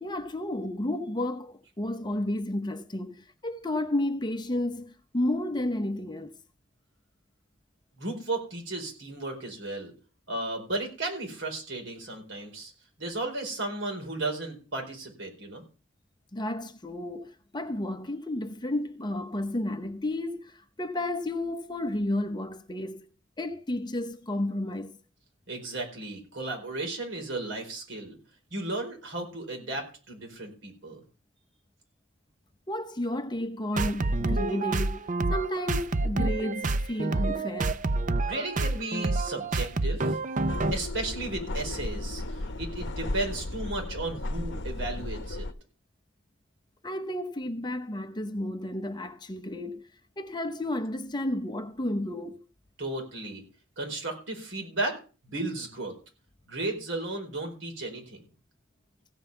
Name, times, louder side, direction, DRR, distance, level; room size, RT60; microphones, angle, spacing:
voice 1, 0.0-6.3 16.3-23.1 23.4-24.9 32.7-37.8 46.8-49.8 50.2-52.4, left 1 dB, 20° left, 0.8 m, -32 dB
voice 2, 8.0-9.9 10.3-12.7 13.0-15.6 25.5-28.2 28.5-31.0 38.2-40.2 40.7-45.5 52.8-53.4 53.8-55.0 55.3-55.9 56.5-58.2, right 2 dB, 65° right, 4.6 m, -34 dB
sound 1, 33.7-40.7, right 2 dB, 40° right, 0.6 m, -28 dB
sound 2, 40.5-45.5, left 1 dB, 60° left, 0.9 m, -34 dB
15.5 x 5.5 x 8.1 m
head